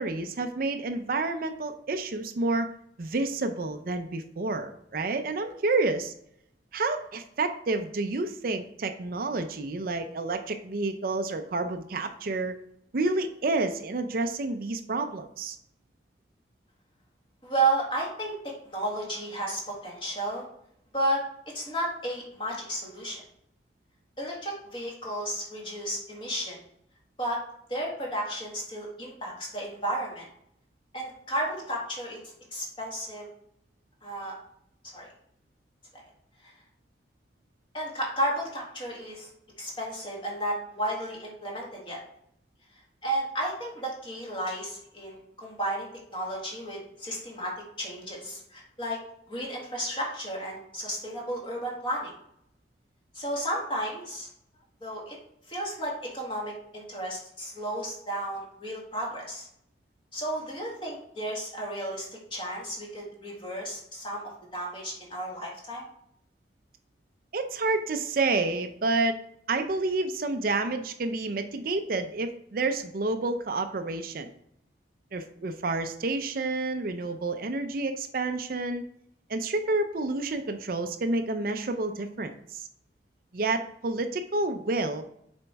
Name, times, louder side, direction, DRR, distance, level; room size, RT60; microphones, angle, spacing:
voice 1, 0.0-2.7 3.0-6.1 6.7-12.6 12.9-15.6 67.3-69.2 69.5-74.3 75.1-78.8 79.3-82.7 83.3-85.0, right 3 dB, 55° right, 7 dB, 0.5 m, -29 dB
voice 2, 17.4-18.3 18.6-20.4 20.9-21.2 21.5-23.2 24.2-26.6 27.2-27.4 27.7-30.2 30.9-32.2 32.5-33.3 34.0-34.3 34.9-35.1 36.4-36.5 37.7-39.3 39.6-42.0 43.0-47.5 47.8-49.0 49.3-52.1 53.1-54.3 54.8-55.2 55.5-59.5 60.1-64.2 64.5-65.8, right 1 dB, 30° left, -2 dB, 1.9 m, -33 dB
6.8 x 4.4 x 3.5 m, 0.71 s
head